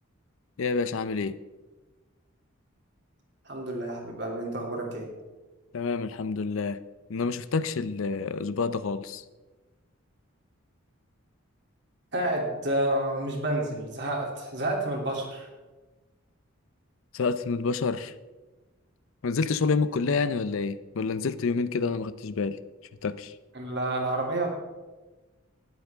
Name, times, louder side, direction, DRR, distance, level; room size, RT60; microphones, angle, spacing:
voice 1, 0.6-1.4 5.7-6.8 7.1-9.2 17.1-18.1 19.2-22.6 23.0-23.3, left 4 dB, 65° left, 14 dB, 0.5 m, -28 dB
voice 2, 3.4-5.1 12.1-15.5 23.5-24.5, right 1 dB, 50° right, -1 dB, 2.7 m, -29 dB
19.0 x 8.1 x 3.5 m, 1.2 s
head